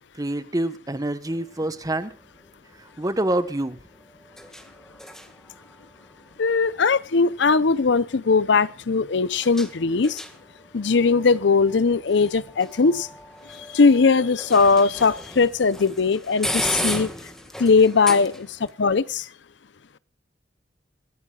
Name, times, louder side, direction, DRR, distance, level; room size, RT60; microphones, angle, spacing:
voice 1, 0.2-2.1 3.0-3.8, right 1 dB, 20° right, 1.1 m, -26 dB
sound 1, 1.3-18.7, equal, 5° left, 1.8 m, -36 dB
voice 2, 6.4-10.2 10.7-13.1 13.5-17.1 17.6-18.5 18.8-19.3, left 4 dB, 70° left, 0.6 m, -19 dB
27.0 x 14.5 x 2.4 m
head